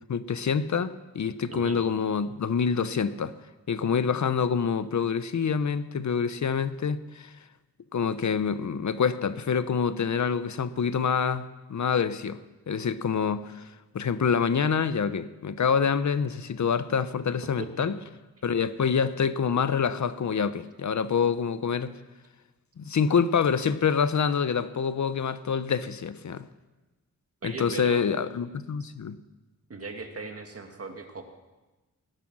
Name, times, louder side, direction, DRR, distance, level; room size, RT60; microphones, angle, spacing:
voice 1, 0.1-3.3 3.7-7.3 7.9-12.4 12.7-13.7 13.9-18.0 18.4-21.9 22.8-26.5 27.4-29.2, left 6 dB, 60° left, 13 dB, 0.8 m, -26 dB
voice 2, 1.5-1.8 17.6-17.9 27.4-28.0 29.7-31.2, right 4 dB, 45° right, 4 dB, 1.9 m, -38 dB
18.5 x 11.0 x 6.1 m, 1.1 s
wide cardioid pair, 130°, 32 cm